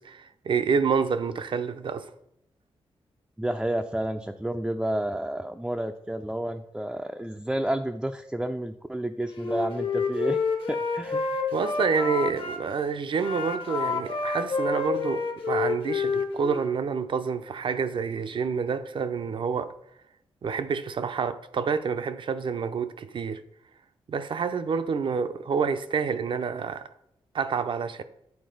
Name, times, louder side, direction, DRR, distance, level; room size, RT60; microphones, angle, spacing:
voice 1, 0.0-2.1 11.5-19.7 20.4-23.4 24.1-26.9 27.3-28.0, right 5 dB, 55° right, 0.5 m, -28 dB
voice 2, 3.4-10.4 10.7-11.5, right 1 dB, 5° right, 0.4 m, -30 dB
Wind instrument woodwind instrument, 9.3-12.6 13.1-16.7, left 4 dB, 60° left, 1.2 m, -29 dB
8.6 x 4.3 x 3.9 m
cardioid pair, 75°, 10 cm